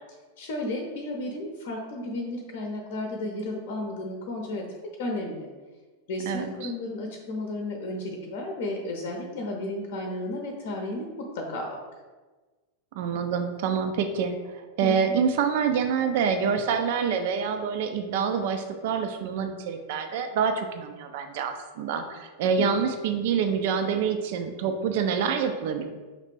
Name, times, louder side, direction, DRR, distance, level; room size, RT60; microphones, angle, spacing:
voice 1, 0.4-4.7 5.0-5.5 6.1-11.8 14.8-15.1 22.6-22.7, left 1 dB, 50° left, 1 dB, 0.7 m, -33 dB
voice 2, 6.3-6.7 12.9-25.8, right 6 dB, 50° right, 6 dB, 0.4 m, -26 dB
5.1 x 3.2 x 3.2 m, 1.3 s
figure-of-eight pair, 90°, 0 cm